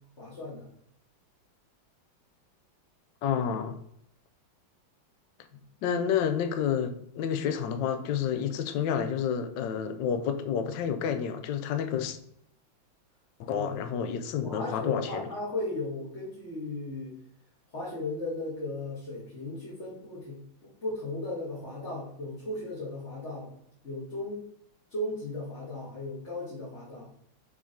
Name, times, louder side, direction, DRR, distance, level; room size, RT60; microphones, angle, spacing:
voice 1, 0.2-0.7 5.5-5.6 13.5-13.8 14.4-17.1 17.7-23.5 23.8-24.4 24.9-27.1, left 2 dB, 35° left, 2.1 m, -36 dB
voice 2, 3.2-3.8 5.8-12.2 13.4-15.3, left 8 dB, 70° left, 1.3 m, -29 dB
6.1 x 4.0 x 5.0 m
omnidirectional pair, 2.2 m